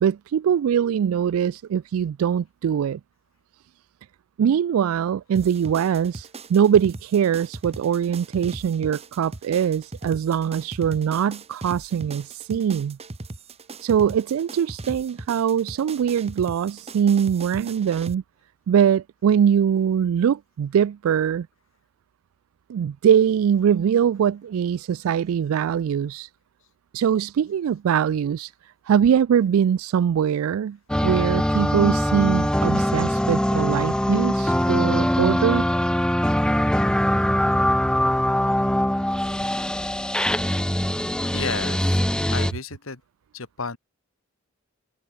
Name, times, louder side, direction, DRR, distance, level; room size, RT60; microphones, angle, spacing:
voice 1, 0.0-3.0 4.4-13.0 13.8-18.2 18.7-21.5 22.7-26.3 26.9-28.5 28.9-30.8 31.0-35.6, right 8 dB, 80° right, 0.3 m, -22 dB
sound 1, 5.3-18.1, right 2 dB, 30° right, 1.0 m, -39 dB
sound 2, 30.9-42.5, equal, 5° left, 0.8 m, -22 dB
voice 2, 41.3-42.0 42.3-43.0 43.3-43.8, left 4 dB, 70° left, 1.8 m, -32 dB
open air
head